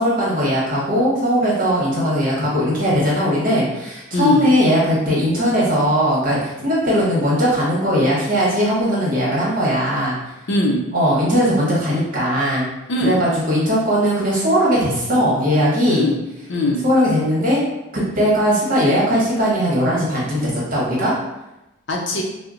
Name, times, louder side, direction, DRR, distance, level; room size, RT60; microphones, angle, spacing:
voice 1, 0.0-10.2 10.9-12.7 13.0-16.1 16.8-17.6 18.2-21.1, equal, 45° right, -6 dB, 1.2 m, -19 dB
voice 2, 4.1-4.5 10.5-10.8 12.9-13.2 15.9-16.2 16.5-16.8 21.9-22.2, left 2 dB, 60° left, 0 dB, 0.6 m, -20 dB
4.4 x 2.1 x 2.5 m, 0.95 s
head